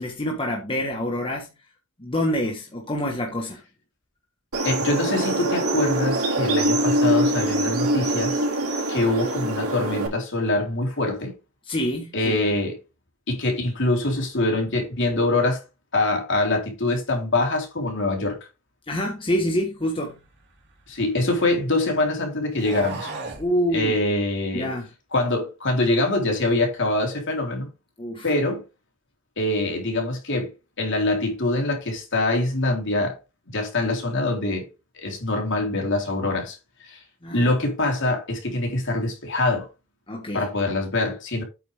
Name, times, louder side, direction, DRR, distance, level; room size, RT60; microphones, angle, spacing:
voice 1, 0.0-1.5 2.0-3.6 11.6-12.4 18.9-20.2 23.4-23.9 24.5-24.9 28.0-28.3 37.2-37.5 40.1-40.5, equal, 25° left, 1.5 m, -26 dB
sound 1, 4.5-10.1, right 1 dB, 90° right, 3.8 m, -24 dB
voice 2, 4.6-8.4 8.9-11.3 12.1-12.8 13.3-15.6 15.9-18.4 20.9-23.1 23.7-24.7 25.1-27.7 28.2-28.6 29.4-30.5 30.8-33.2 33.5-34.7 34.9-36.6 36.9-37.0 37.3-39.7 40.3-41.4, left 2 dB, 55° left, 3.9 m, -24 dB
sound 2, 20.2-21.7 22.5-23.5, right 3 dB, 50° right, 3.1 m, -37 dB
8.7 x 7.0 x 3.6 m
head